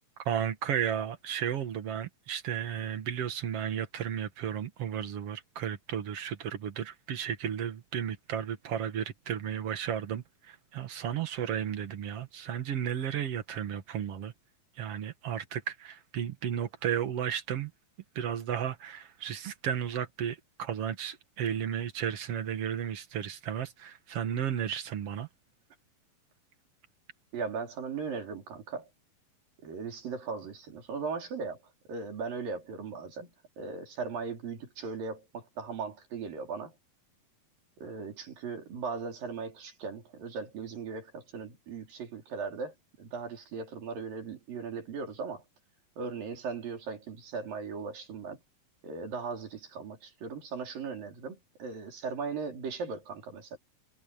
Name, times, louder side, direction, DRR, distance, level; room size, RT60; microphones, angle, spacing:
voice 1, 0.3-14.3 14.8-17.7 18.2-25.3, right 9 dB, 50° right, 2.3 m, -33 dB
voice 2, 27.3-28.9 29.6-31.6 31.9-36.8 37.8-45.4 46.0-48.4 48.8-53.6, right 5 dB, 80° right, 5.7 m, -38 dB
omnidirectional pair, 3.9 m